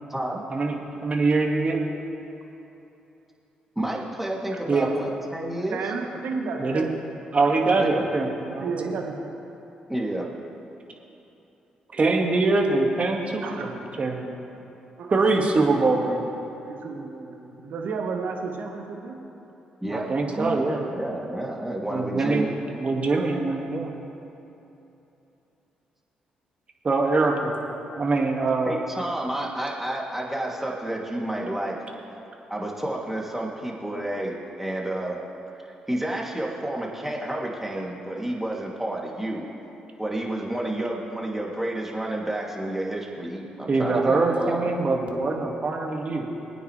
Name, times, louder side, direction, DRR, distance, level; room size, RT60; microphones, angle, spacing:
voice 1, 0.1-0.4 3.8-5.9 7.8-8.1 9.9-10.3 19.8-22.5 28.6-31.8 32.5-35.2 35.9-39.5 40.0-44.7, right 1 dB, 10° right, -3 dB, 2.9 m, -30 dB
voice 2, 1.0-1.8 4.7-4.9 6.6-6.9 7.3-8.7 11.9-14.3 15.1-16.3 19.9-20.8 21.9-23.9 26.8-27.5 28.0-28.8 43.7-46.3, right 3 dB, 45° right, 1 dB, 2.0 m, -23 dB
voice 3, 5.7-7.0 7.5-7.8 8.6-9.3 13.4-13.7 15.0-15.2 16.6-19.2, right 4 dB, 65° right, 2 dB, 1.5 m, -32 dB
21.0 x 9.3 x 3.4 m, 3.0 s
hypercardioid pair, 45°, 3 cm